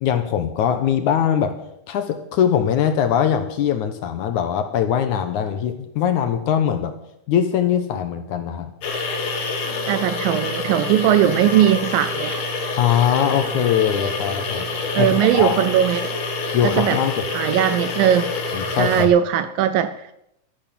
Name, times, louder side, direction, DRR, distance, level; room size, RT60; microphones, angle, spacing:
voice 1, 0.0-1.5 1.9-6.9 7.3-8.7 12.8-14.7 15.0-15.6 16.5-17.2 18.5-19.1, left 9 dB, 70° left, 8 dB, 2.1 m, -21 dB
sound 1, 8.8-19.1, left 3 dB, 85° left, 4.2 m, -27 dB
voice 2, 9.9-12.4 14.9-16.1 16.6-17.0 17.3-18.3 18.8-19.9, right 11 dB, 80° right, 12 dB, 2.2 m, -19 dB
13.0 x 11.5 x 7.4 m, 0.79 s
omnidirectional pair, 4.4 m